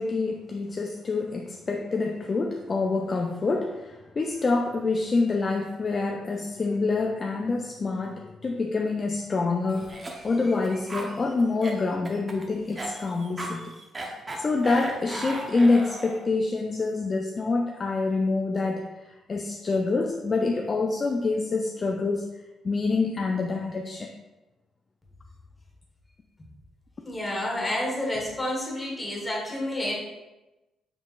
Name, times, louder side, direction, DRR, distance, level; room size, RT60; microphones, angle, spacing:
voice 1, 0.0-13.7 14.4-18.9 19.3-22.3 22.6-24.1, left 3 dB, 35° left, 2 dB, 0.3 m, -26 dB
Cough, 9.7-16.3, right 2 dB, 30° right, 0.7 m, -37 dB
voice 2, 27.0-30.0, left 1 dB, 15° left, -2 dB, 1.2 m, -29 dB
5.1 x 3.3 x 2.4 m, 1.0 s
cardioid pair, 90°, 0 cm